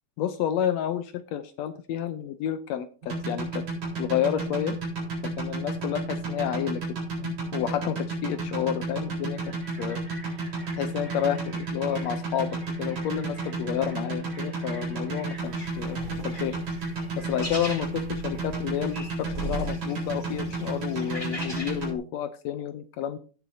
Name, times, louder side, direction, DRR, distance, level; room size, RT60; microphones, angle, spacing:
voice 1, 0.2-3.6 4.0-4.7 5.4-6.8 7.2-9.4 9.8-10.0 10.8-12.5 12.8-16.6 17.2-23.2, left 10 dB, 75° left, 10 dB, 1.7 m, -30 dB
sound 1, 3.0-21.9, right 2 dB, 65° right, 5.4 m, -31 dB
sound 2, 9.3-19.2, equal, 20° right, 5.1 m, -49 dB
sound 3, 15.4-21.9, equal, 10° left, 2.3 m, -39 dB
17.0 x 7.3 x 2.7 m, 0.38 s
omnidirectional pair, 3.5 m